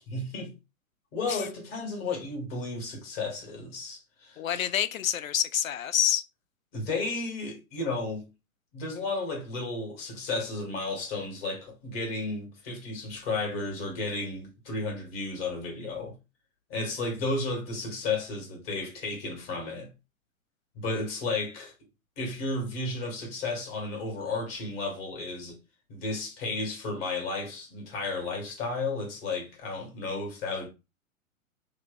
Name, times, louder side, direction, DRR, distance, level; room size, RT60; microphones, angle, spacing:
voice 1, 0.1-0.5 1.1-4.7 6.7-8.3 8.7-16.1 16.7-19.9 20.7-21.7 22.2-25.5 25.9-30.7, left 3 dB, 45° left, 1.7 m, -33 dB
voice 2, 4.4-6.2, left 10 dB, 75° left, 0.5 m, -27 dB
3.2 x 2.2 x 3.9 m
figure-of-eight pair, 115°, 41 cm